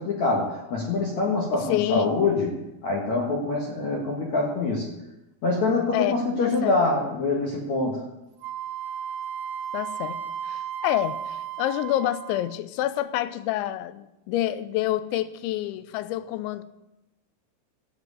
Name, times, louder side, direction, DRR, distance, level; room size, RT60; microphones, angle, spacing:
voice 1, 0.0-4.9 5.4-8.1, left 3 dB, 55° left, 2.1 m, -25 dB
voice 2, 1.7-2.1 5.9-6.8 9.7-10.2 10.4-16.6, left 13 dB, 80° left, 2.8 m, -28 dB
Wind instrument woodwind instrument, 8.4-12.6, right 8 dB, 85° right, 2.2 m, -34 dB
14.5 x 8.0 x 8.1 m
omnidirectional pair, 5.7 m